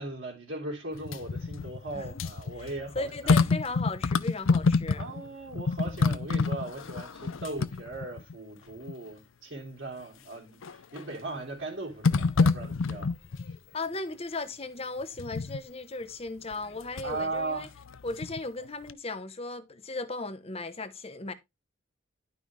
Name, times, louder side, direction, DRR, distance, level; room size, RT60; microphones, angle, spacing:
voice 1, 0.0-3.3 5.0-13.1 17.0-17.7, right 2 dB, 65° right, 3.3 m, -38 dB
sound 1, 0.9-5.3 5.5-8.3 8.9-9.0 10.6-11.1 12.0-13.6 15.2-15.6 16.5-17.2 17.6-18.6 18.9-19.0, left 4 dB, 75° left, 0.5 m, -28 dB
voice 2, 2.6-5.0 13.7-17.7 18.0-21.3, left 3 dB, 30° left, 0.9 m, -36 dB
11.5 x 5.5 x 3.2 m
head